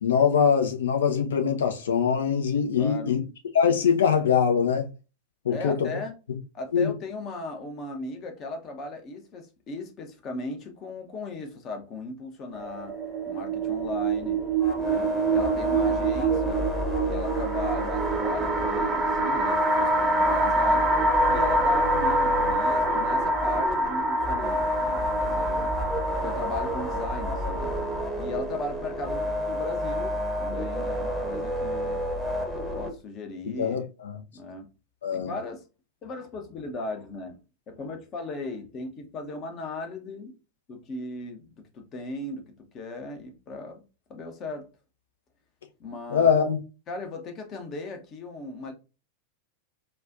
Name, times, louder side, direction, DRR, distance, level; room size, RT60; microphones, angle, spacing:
voice 1, 0.0-3.2 3.5-4.9 5.4-5.9 6.7-6.9 33.6-34.2 35.0-35.3 46.1-46.6, left 7 dB, 65° left, 0.6 m, -23 dB
voice 2, 2.8-3.2 5.5-6.2 6.5-13.0 13.3-14.4 14.8-16.7 17.0-20.9 21.3-25.7 26.2-27.8 28.2-32.0 32.7-33.8 34.3-34.7 35.1-35.6 36.0-37.4 37.7-40.4 40.7-43.8 44.1-44.7 45.8-46.3 46.9-48.7, left 2 dB, 30° left, 0.9 m, -37 dB
sound 1, 12.5-28.0, right 2 dB, 25° right, 0.6 m, -26 dB
sound 2, 14.6-32.9, left 1 dB, 5° left, 1.0 m, -30 dB
4.3 x 2.4 x 2.5 m
figure-of-eight pair, 90°, 0 cm